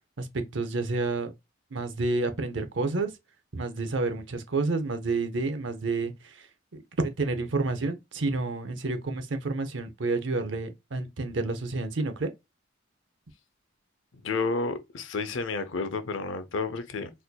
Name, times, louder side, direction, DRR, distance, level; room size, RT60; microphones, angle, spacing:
voice 1, 0.2-1.3 1.7-3.1 3.5-6.5 6.7-12.3, right 3 dB, 70° right, 0.7 m, -29 dB
voice 2, 14.2-17.1, left 4 dB, 80° left, 0.6 m, -31 dB
4.2 x 2.6 x 2.2 m
head